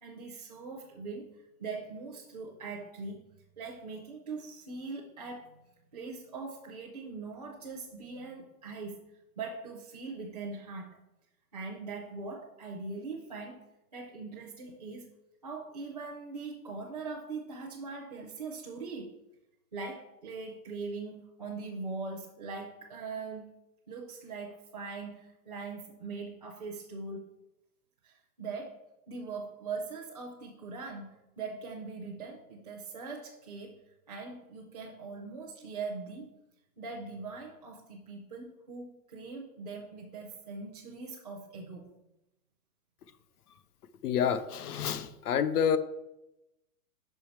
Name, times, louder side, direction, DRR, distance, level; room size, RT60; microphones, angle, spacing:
voice 1, 0.0-3.2 3.6-5.5 5.9-9.0 9.4-11.0 11.5-15.1 15.4-19.2 19.7-23.5 23.9-27.3 28.0-28.8 29.1-36.3 36.8-41.9, right 4 dB, 30° right, -3 dB, 0.5 m, -41 dB
voice 2, 44.0-45.8, left 8 dB, 90° left, 11 dB, 0.8 m, -28 dB
5.6 x 5.6 x 4.4 m, 0.90 s
hypercardioid pair, 180°, 44 cm